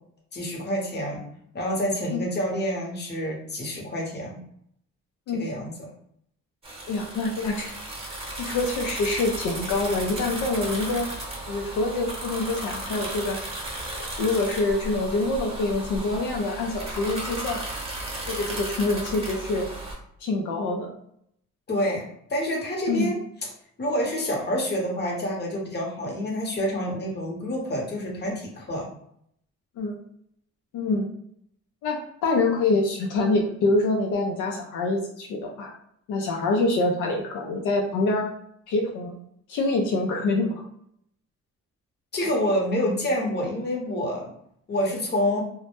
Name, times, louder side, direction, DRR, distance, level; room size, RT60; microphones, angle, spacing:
voice 1, 0.3-1.2 1.5-4.4 5.3-5.7 21.7-23.2 23.8-28.9 42.1-44.3 44.7-45.4, equal, 35° left, -2 dB, 0.9 m, -27 dB
sound 1, 6.6-20.0, right 1 dB, 20° right, 0.8 m, -35 dB
voice 2, 6.9-7.7 8.4-11.1 11.5-13.4 13.9-17.6 18.3-19.7 20.2-20.9 22.9-23.1 29.8-29.9 30.7-31.1 31.8-35.7 36.1-38.3 38.7-39.2 39.5-40.6, left 2 dB, 80° left, 1 dB, 0.5 m, -25 dB
2.1 x 2.0 x 2.9 m, 0.71 s
cardioid pair, 90°, 30 cm